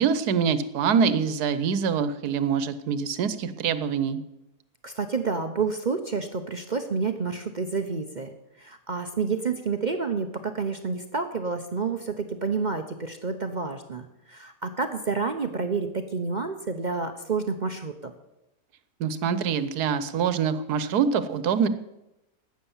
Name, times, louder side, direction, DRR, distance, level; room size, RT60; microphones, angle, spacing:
voice 1, 0.0-4.2 19.0-21.7, right 6 dB, 85° right, 13 dB, 1.4 m, -25 dB
voice 2, 4.8-18.1, right 4 dB, 45° right, 6 dB, 0.6 m, -29 dB
12.5 x 8.7 x 7.1 m, 0.92 s
omnidirectional pair, 1.6 m